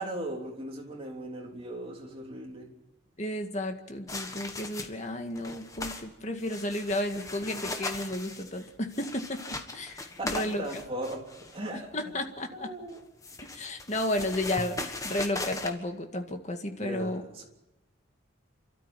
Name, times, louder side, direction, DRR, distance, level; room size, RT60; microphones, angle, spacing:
voice 1, 0.0-2.7 10.2-12.1 12.5-13.0 16.8-17.5, right 1 dB, 25° right, 0 dB, 3.4 m, -38 dB
voice 2, 3.2-10.6 11.9-12.7 13.5-17.2, left 1 dB, 35° left, 5 dB, 2.0 m, -33 dB
sound 1, 4.1-5.1 5.4-6.1 6.4-11.6 12.9-15.7, left 2 dB, 15° left, 1.5 m, -38 dB
29.0 x 13.0 x 9.2 m, 0.99 s
head